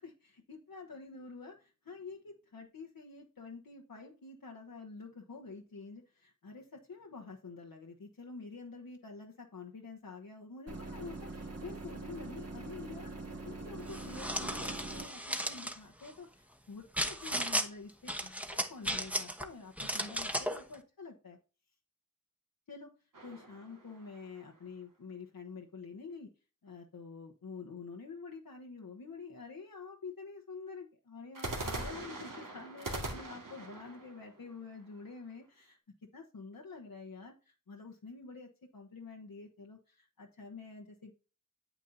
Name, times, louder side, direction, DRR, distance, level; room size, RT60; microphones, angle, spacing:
voice 1, 0.0-21.4 22.7-22.9 23.2-26.3 26.6-35.8 36.1-41.1, left 4 dB, 85° left, 0 dB, 1.2 m, -48 dB
sound 1, 10.7-15.1, right 2 dB, 45° right, 2.1 m, -43 dB
sound 2, 13.9-15.8 17.0-17.7 18.1-19.4 19.8-20.6, equal, 5° right, 1.1 m, -35 dB
sound 3, 23.1-24.6 31.3-35.3, right 2 dB, 70° right, 2.0 m, -42 dB
9.0 x 8.4 x 2.7 m, 0.34 s
wide cardioid pair, 75°, 34 cm